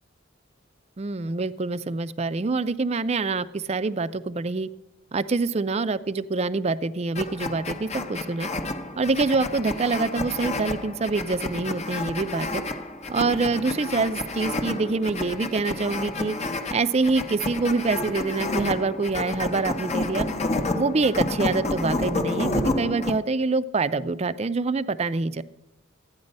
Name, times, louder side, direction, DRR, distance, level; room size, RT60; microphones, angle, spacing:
voice 1, 1.0-4.7 5.1-8.5 9.0-12.6 13.1-16.4 16.7-20.3 20.7-25.4, right 3 dB, 30° right, 14 dB, 0.4 m, -25 dB
sound 1, 7.1-23.2, left 2 dB, 35° left, 0.8 m, -30 dB
13.5 x 9.6 x 5.3 m, 0.94 s
head